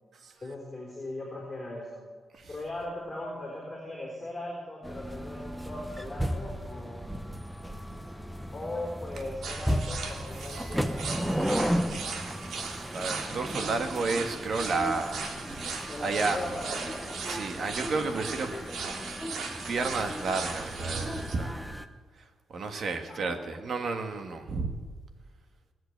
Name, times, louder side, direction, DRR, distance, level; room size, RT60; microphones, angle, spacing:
voice 1, 0.4-2.0 2.5-7.0 8.5-11.8 15.8-17.2 23.0-23.4, left 1 dB, 15° left, -3 dB, 3.9 m, -39 dB
sound 1, 4.8-21.8, equal, 5° right, 0.8 m, -35 dB
sound 2, 9.4-21.3, right 4 dB, 70° right, 2.1 m, -38 dB
voice 2, 12.9-15.3 15.6-16.4 17.2-18.5 19.6-21.6 22.5-24.8, right 4 dB, 55° right, 6 dB, 1.6 m, -31 dB
19.5 x 7.9 x 8.1 m, 1.5 s
cardioid pair, 125°, 0 cm